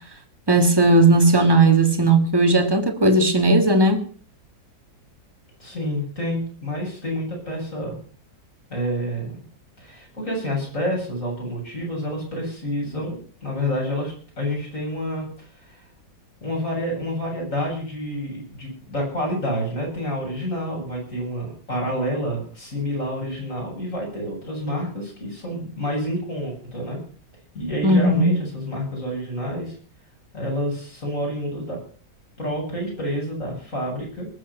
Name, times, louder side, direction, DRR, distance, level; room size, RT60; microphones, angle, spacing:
voice 1, 0.5-4.0 27.8-28.3, right 2 dB, 15° right, 1.8 m, -16 dB
voice 2, 5.6-8.0 8.7-9.4 9.8-15.8 16.4-27.0 27.5-29.7 30.3-31.8 32.4-34.3, equal, 45° left, 8.4 m, -28 dB
20.0 x 8.1 x 7.2 m
omnidirectional pair, 1.9 m